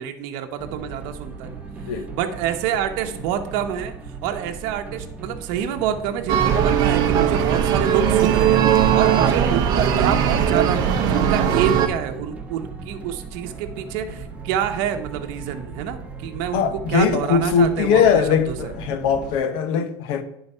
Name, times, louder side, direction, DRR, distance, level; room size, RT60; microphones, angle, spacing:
voice 1, 0.0-1.6 2.1-16.6 16.9-18.7, right 9 dB, 75° right, 0.9 m, -27 dB
sound 1, 0.6-19.4, right 4 dB, 15° right, 0.8 m, -37 dB
sound 2, 6.3-11.9, right 8 dB, 45° right, 0.8 m, -19 dB
voice 2, 16.5-20.2, left 7 dB, 65° left, 0.9 m, -20 dB
10.5 x 4.0 x 5.4 m
cardioid pair, 170°, 10 cm